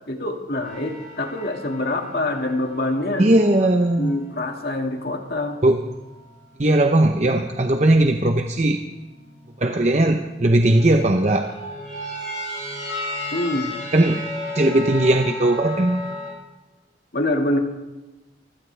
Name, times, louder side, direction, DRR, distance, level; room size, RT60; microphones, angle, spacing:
voice 1, 0.1-3.3 4.0-5.6 13.3-13.8 17.1-17.6, left 1 dB, 55° left, 3 dB, 2.1 m, -25 dB
sound 1, 0.6-6.2 6.7-7.7 8.9-9.6 10.6-16.3, left 1 dB, 5° left, 8.0 m, -35 dB
voice 2, 3.2-4.1 5.6-5.8 6.6-8.8 9.6-11.5 13.9-14.2 14.5-16.0, right 1 dB, 40° right, 4 dB, 0.8 m, -18 dB
24.0 x 16.0 x 3.4 m, 1.1 s
head